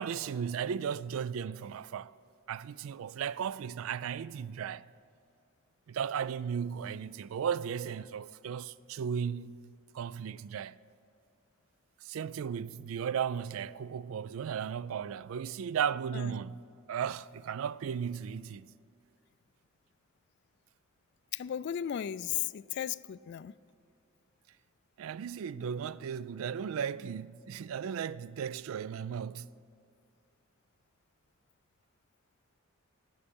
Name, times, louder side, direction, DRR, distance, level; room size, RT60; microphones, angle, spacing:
voice 1, 0.0-2.1 2.5-4.8 5.9-10.8 12.0-16.6 16.9-18.7 25.0-29.5, right 7 dB, 75° right, 0.3 m, -35 dB
voice 2, 21.3-23.5, left 10 dB, 55° left, 0.3 m, -35 dB
18.5 x 8.5 x 5.3 m
head